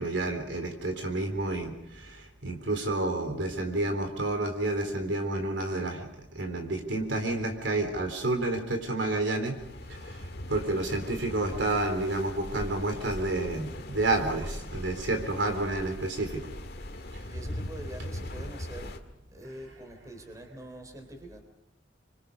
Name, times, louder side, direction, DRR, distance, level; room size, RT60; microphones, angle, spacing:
voice 1, 0.0-6.1 6.3-9.6 10.1-16.5 19.4-19.5, right 2 dB, 75° right, 5 dB, 3.7 m, -30 dB
sound 1, 9.4-19.0, left 1 dB, 60° left, 1.9 m, -40 dB
voice 2, 17.2-18.9 19.3-21.4, right 1 dB, 20° right, 5 dB, 3.9 m, -44 dB
27.0 x 24.0 x 5.4 m, 0.85 s
head